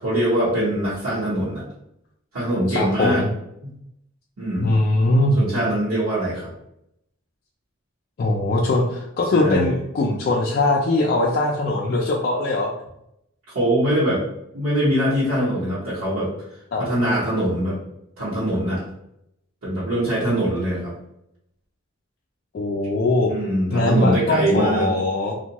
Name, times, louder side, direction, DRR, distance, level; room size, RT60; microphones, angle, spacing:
voice 1, 0.0-1.7 2.3-3.2 3.6-3.7 4.4-4.8 5.4-6.5 9.3-9.7 13.5-14.2 14.5-16.3 16.8-17.8 18.2-18.8 19.6-20.9 23.3-24.9, right 1 dB, 85° right, -10 dB, 0.9 m, -22 dB
voice 2, 2.7-3.3 4.6-5.5 8.2-12.7 16.7-16.8 22.5-23.3 23.7-25.3, left 2 dB, 45° left, -2 dB, 0.3 m, -21 dB
2.6 x 2.2 x 2.9 m, 0.79 s
head